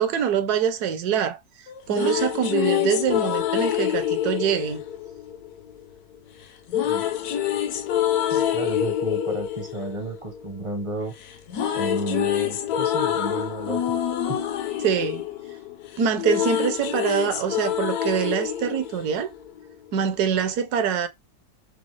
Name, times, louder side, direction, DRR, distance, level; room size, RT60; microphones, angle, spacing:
voice 1, 0.0-1.4 1.9-4.8 14.8-15.2 16.0-19.3 19.9-21.1, right 8 dB, 70° right, 1.1 m, -24 dB
sound 1, 1.7-5.8 6.7-10.9 11.2-19.7, left 10 dB, 70° left, 1.1 m, -26 dB
voice 2, 8.3-11.1 11.7-13.8 14.3-14.4, right 2 dB, 35° right, 0.5 m, -32 dB
5.0 x 2.0 x 3.2 m
omnidirectional pair, 1.8 m